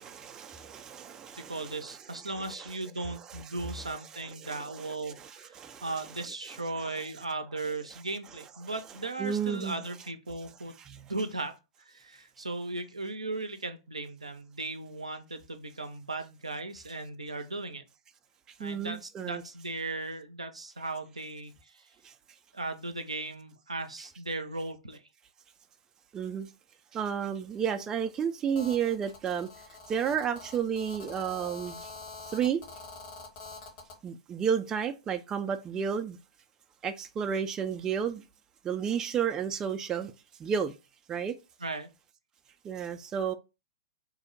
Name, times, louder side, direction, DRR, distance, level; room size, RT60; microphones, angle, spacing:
voice 1, 0.0-2.0 2.4-2.5 4.4-5.8 9.2-9.8 10.9-11.0 18.6-19.4 22.0-22.1 26.1-26.5 26.9-29.5 29.9-31.9 32.3-32.6 34.0-36.2 36.8-38.2 38.6-40.1 40.4-40.7 41.1-41.4 42.6-43.3, right 7 dB, 20° right, 0.3 m, -32 dB
voice 2, 1.4-5.6 5.8-10.7 11.1-17.8 18.6-21.9 22.5-25.0 41.6-41.9, right 2 dB, 85° right, 0.5 m, -37 dB
Telephone, 28.5-34.0, left 3 dB, 40° left, 0.9 m, -46 dB
2.6 x 2.0 x 3.8 m
figure-of-eight pair, 105°, 3 cm